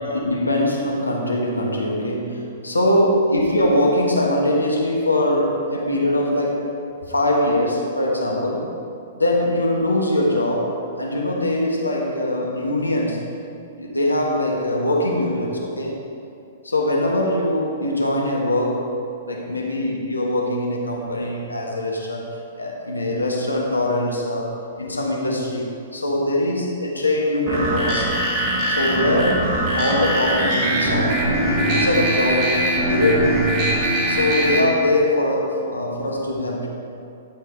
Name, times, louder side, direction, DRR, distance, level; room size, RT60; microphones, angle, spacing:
voice 1, 0.0-6.7 7.0-8.7 9.1-13.2 13.8-16.0 16.6-18.9 19.3-22.3 22.6-28.1 28.7-32.5 32.8-33.5 34.1-36.7, left 1 dB, 85° left, -1 dB, 1.6 m, -22 dB
sound 1, 27.5-34.6, right 1 dB, 30° right, 2.2 m, -22 dB
12.5 x 5.9 x 4.7 m, 2.5 s
figure-of-eight pair, 110°, 0 cm